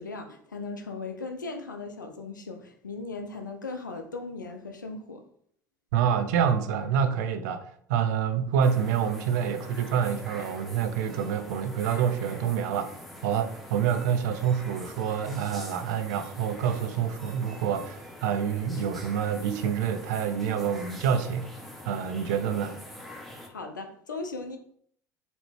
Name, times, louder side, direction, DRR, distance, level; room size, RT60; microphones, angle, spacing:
voice 1, 0.0-5.2 23.5-24.6, left 3 dB, 90° left, 0.5 m, -38 dB
voice 2, 5.9-12.9 13.2-21.5 21.8-22.8, right 8 dB, 65° right, 0.5 m, -27 dB
sound 1, 8.6-23.5, left 1 dB, ahead, 1.0 m, -45 dB
4.0 x 2.9 x 3.2 m
hypercardioid pair, 70°, 10 cm